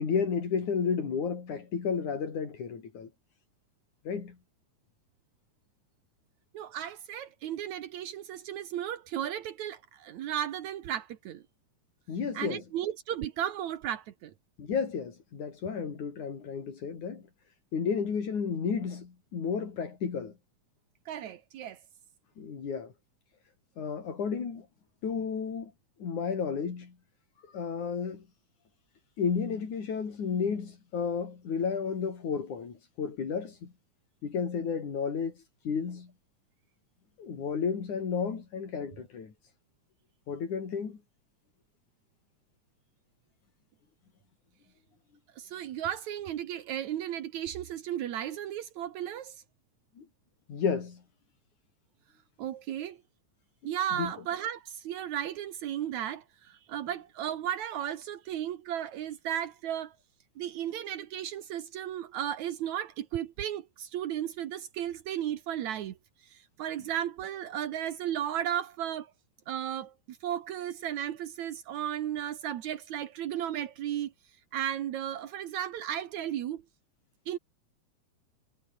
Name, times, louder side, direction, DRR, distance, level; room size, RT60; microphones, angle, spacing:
voice 1, 0.0-3.1 4.1-4.4 12.1-12.6 14.6-17.2 17.7-20.3 22.4-22.9 23.8-24.7 25.0-25.7 26.0-26.9 27.5-28.2 29.2-33.7 34.2-36.1 37.2-39.3 40.3-41.0 50.0-50.1 50.5-51.0 54.0-54.1, left 6 dB, 80° left, 5.2 m, -32 dB
voice 2, 6.5-11.4 12.3-14.3 21.1-21.8 45.4-49.4 52.4-53.0 53.6-60.0 60.4-66.0 66.2-69.1 69.5-74.1 74.5-76.6 77.3-77.4, right 10 dB, 75° right, 2.5 m, -35 dB
omnidirectional pair, 3.4 m